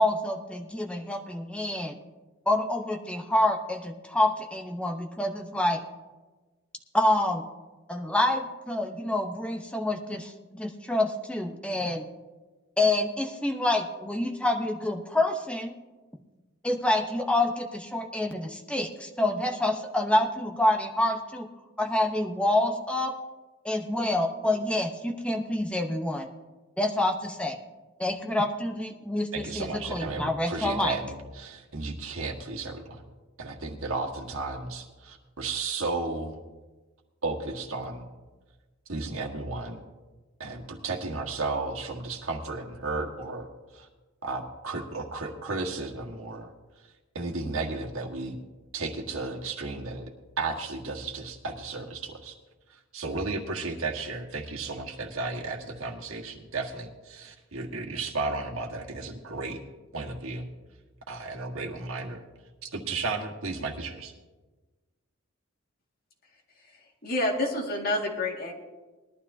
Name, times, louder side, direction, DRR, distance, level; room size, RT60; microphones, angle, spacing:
voice 1, 0.0-2.0 2.5-5.8 6.9-7.4 7.9-12.1 12.8-15.7 16.6-21.5 21.8-23.1 23.6-26.3 26.8-27.6 28.0-31.0, left 1 dB, 5° left, 3 dB, 0.9 m, -27 dB
voice 2, 29.3-33.0 33.4-36.4 37.2-38.1 38.9-39.8 40.4-43.5 43.7-43.9 44.2-46.5 47.1-48.4 48.7-50.0 50.4-52.3 52.9-59.6 59.9-60.5 61.1-62.2 62.6-64.1, right 3 dB, 90° right, 1 dB, 1.6 m, -34 dB
voice 3, 66.6-68.6, left 1 dB, 50° left, 0 dB, 2.0 m, -29 dB
20.0 x 12.0 x 2.7 m, 1.3 s
head